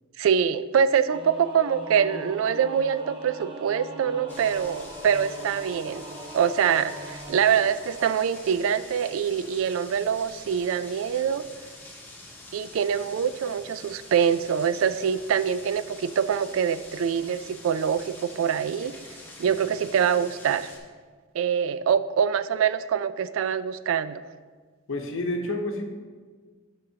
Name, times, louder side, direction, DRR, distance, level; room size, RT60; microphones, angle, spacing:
voice 1, 0.2-6.0 6.3-11.4 12.5-19.0 19.4-20.7 21.3-24.2, right 7 dB, 75° right, 14 dB, 0.3 m, -24 dB
Singing / Musical instrument, 1.1-8.8, right 1 dB, 25° right, 0.8 m, -41 dB
sound 1, 4.3-20.8, left 2 dB, 10° left, 1.2 m, -46 dB
voice 2, 24.9-25.9, left 1 dB, 70° left, 3 dB, 0.9 m, -29 dB
11.5 x 5.3 x 2.8 m, 1.5 s
head